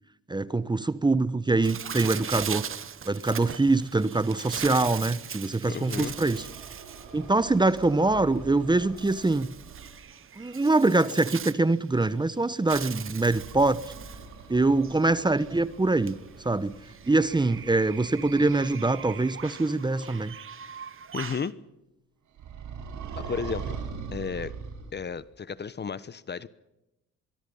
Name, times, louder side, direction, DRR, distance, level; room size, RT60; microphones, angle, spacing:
voice 1, 0.3-2.6 3.0-6.4 7.1-9.5 10.4-13.8 14.5-16.2 16.4-16.8 17.1-20.3, right 2 dB, 15° right, 16 dB, 0.9 m, -24 dB
Bird, 1.6-21.5, right 8 dB, 45° right, 1.3 m, -40 dB
voice 2, 5.7-6.1 21.1-21.5 23.2-23.8 24.1-24.6 24.9-26.5, left 6 dB, 35° left, 18 dB, 1.0 m, -33 dB
sound 1, 6.0-10.1 13.2-19.5 22.4-25.2, right 6 dB, 75° right, 6.1 m, -42 dB
24.0 x 22.5 x 5.5 m, 0.93 s
cardioid pair, 90°, 30 cm